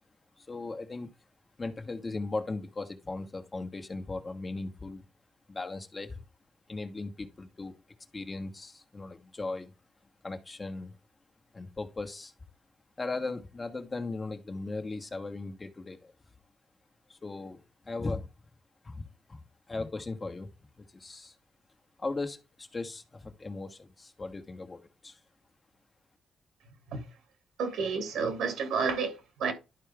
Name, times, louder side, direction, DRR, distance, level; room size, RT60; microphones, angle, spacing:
voice 1, 0.4-1.1 1.6-5.0 5.5-6.2 6.7-7.7 8.1-9.7 10.2-11.0 11.5-12.3 13.0-16.1 17.1-18.3 18.8-19.0 19.3-21.3 22.0-25.2, left 3 dB, 30° left, 1.4 m, -38 dB
voice 2, 27.6-29.5, right 5 dB, 90° right, 2.6 m, -30 dB
12.0 x 4.6 x 3.5 m
cardioid pair, 90°, 0 cm